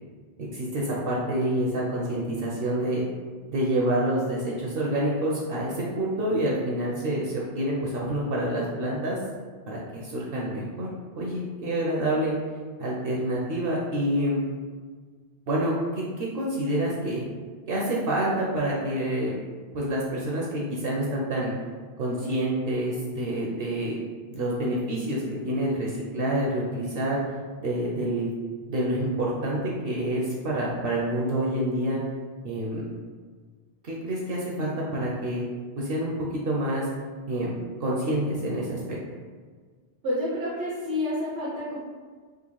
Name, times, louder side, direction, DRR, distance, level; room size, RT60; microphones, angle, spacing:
voice 1, 0.4-3.0 3.5-9.2 9.7-10.9 11.2-12.3 12.8-14.4 15.5-17.2 17.7-19.3 19.7-21.5 22.0-24.0 24.3-27.2 27.6-28.3 28.7-32.0 32.4-32.8 33.8-35.4 35.8-36.9 37.3-39.0, right 1 dB, 65° right, -3 dB, 0.7 m, -27 dB
voice 2, 40.0-41.8, left 1 dB, 90° right, -8 dB, 1.0 m, -29 dB
3.5 x 2.1 x 3.0 m, 1.5 s
omnidirectional pair, 1.1 m